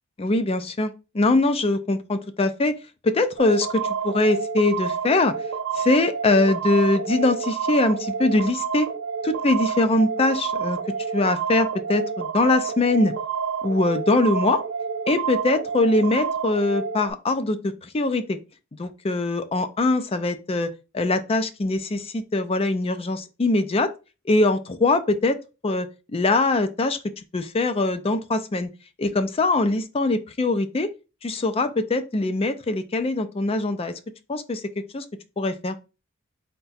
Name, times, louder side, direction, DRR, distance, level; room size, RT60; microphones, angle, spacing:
voice 1, 0.2-2.7 3.0-5.3 5.7-8.9 9.2-10.8 11.1-13.1 13.6-14.6 15.1-18.4 18.8-23.9 24.3-25.4 25.6-27.0 27.3-28.7 29.0-30.9 31.2-33.9 34.3-34.6 34.9-35.0 35.4-35.7, left 2 dB, 30° left, 0.4 m, -22 dB
sound 1, 3.4-17.1, right 6 dB, 75° right, 0.5 m, -29 dB
4.6 x 2.2 x 4.0 m
head